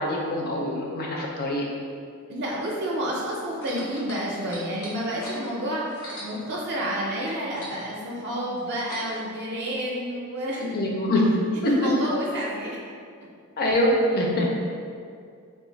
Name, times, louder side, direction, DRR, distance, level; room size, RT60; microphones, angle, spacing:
voice 1, 0.0-1.6 10.6-11.2 11.6-11.9 13.6-14.5, left 1 dB, 45° left, -1 dB, 0.5 m, -24 dB
voice 2, 2.3-10.6 11.7-12.8, equal, 50° right, -4 dB, 0.4 m, -30 dB
sound 1, 3.5-7.0 7.2-9.3 10.1-10.2, equal, 75° left, 0.8 m, -41 dB
2.5 x 2.3 x 3.9 m, 2.3 s
head